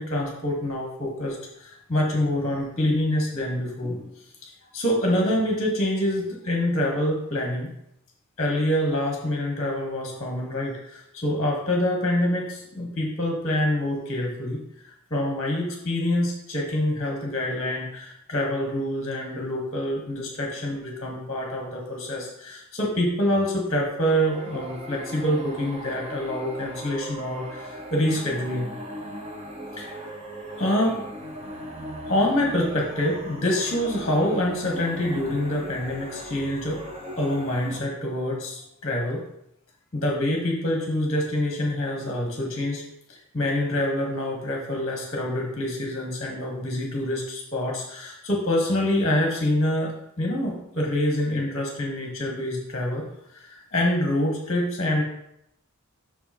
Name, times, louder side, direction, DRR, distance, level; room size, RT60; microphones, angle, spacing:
voice 1, 0.0-4.1 4.7-7.7 8.4-14.6 14.8-28.7 29.7-29.9 30.6-31.0 32.1-36.8 37.2-39.2 39.9-42.8 43.1-53.0 53.3-55.0, left 1 dB, 30° left, -1 dB, 1.2 m, -26 dB
sound 1, 24.1-37.8, equal, 25° right, 0.7 m, -38 dB
5.9 x 5.5 x 4.3 m, 0.79 s
head